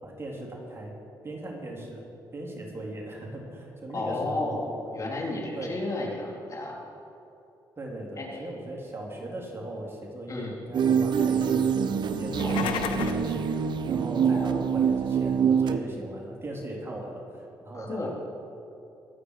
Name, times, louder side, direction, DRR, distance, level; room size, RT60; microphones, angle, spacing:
voice 1, 0.0-1.0 1.2-2.0 2.3-4.6 5.6-5.8 7.8-11.8 12.2-13.5 13.9-18.1, right 1 dB, 30° right, -2 dB, 3.7 m, -38 dB
voice 2, 3.9-6.8 8.2-8.5 10.3-10.6 12.4-12.7 14.3-14.7 17.7-18.1, left 2 dB, 40° left, -2 dB, 3.4 m, -33 dB
sound 1, 10.7-15.8, right 7 dB, 60° right, 0.8 m, -25 dB
sound 2, 12.2-13.3, left 8 dB, 90° left, 0.9 m, -32 dB
23.5 x 9.1 x 4.9 m, 2.8 s
supercardioid pair, 65°, 9 cm